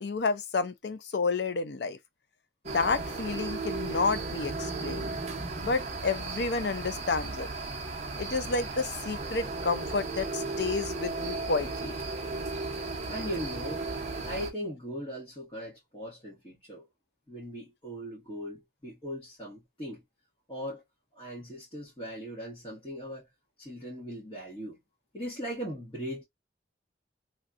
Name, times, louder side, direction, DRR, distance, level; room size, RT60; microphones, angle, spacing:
voice 1, 0.0-2.0 2.7-5.1 5.6-7.5 8.2-11.9, left 4 dB, 70° left, 0.5 m, -30 dB
sound 1, 2.7-14.5, right 3 dB, 40° right, 0.8 m, -35 dB
voice 2, 13.1-13.9 14.3-16.9 17.3-20.0 20.5-20.8 21.1-23.3 23.6-24.8 25.1-26.2, equal, 30° left, 1.5 m, -39 dB
3.2 x 2.7 x 2.4 m
head